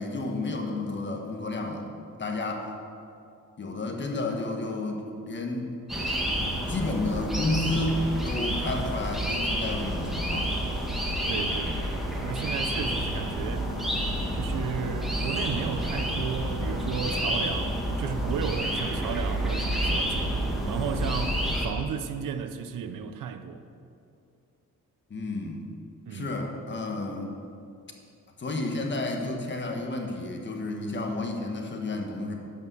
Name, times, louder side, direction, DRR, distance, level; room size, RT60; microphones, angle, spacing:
voice 1, 0.0-1.9 2.2-2.7 3.6-5.8 6.7-10.5 25.1-25.6 26.1-27.3 28.4-32.3, left 2 dB, 35° left, 1.3 m, -31 dB
sound 1, 5.9-21.7, equal, ahead, 1.5 m, -29 dB
voice 2, 11.3-11.9 12.2-13.7 14.3-20.3 20.6-23.6 26.1-26.3, right 7 dB, 75° right, 0.7 m, -34 dB
12.5 x 5.2 x 6.8 m
wide cardioid pair, 140°, 32 cm